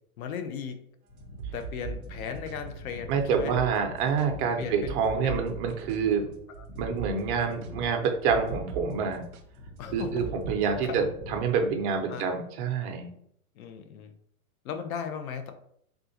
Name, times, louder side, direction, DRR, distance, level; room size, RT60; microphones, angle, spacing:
voice 1, 0.2-0.8 1.5-3.6 4.6-5.4 6.5-6.7 9.8-10.3 10.6-11.1 12.1-12.4 13.6-14.1 14.6-15.5, left 7 dB, 70° left, 7 dB, 0.7 m, -37 dB
sound 1, 1.1-12.2, left 2 dB, 20° left, 0.5 m, -44 dB
sound 2, 1.2-8.9 9.1-9.4 10.2-10.6, right 7 dB, 70° right, 0.8 m, -41 dB
voice 2, 3.1-6.2 6.8-9.2 9.9-13.1, right 6 dB, 35° right, 4 dB, 0.7 m, -27 dB
3.6 x 2.5 x 2.8 m, 0.68 s
hypercardioid pair, 120°, 44 cm